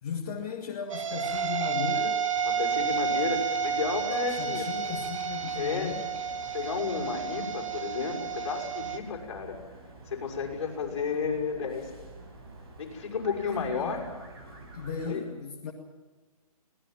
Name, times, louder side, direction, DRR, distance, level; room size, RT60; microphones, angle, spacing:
voice 1, 0.0-2.3 4.3-6.0 13.6-14.0 14.7-15.7, left 6 dB, 30° left, -2 dB, 2.2 m, -36 dB
sound 1, 0.9-9.0, right 6 dB, 55° right, 2.1 m, -31 dB
sound 2, 2.3-15.1, right 2 dB, 40° right, 5.7 m, -49 dB
voice 2, 2.4-4.7 5.5-6.0 6.5-9.6 10.1-11.9 12.8-14.1 15.1-15.2, left 5 dB, 45° left, 0 dB, 6.3 m, -32 dB
25.0 x 19.0 x 7.6 m, 1.2 s
hypercardioid pair, 165°, 20 cm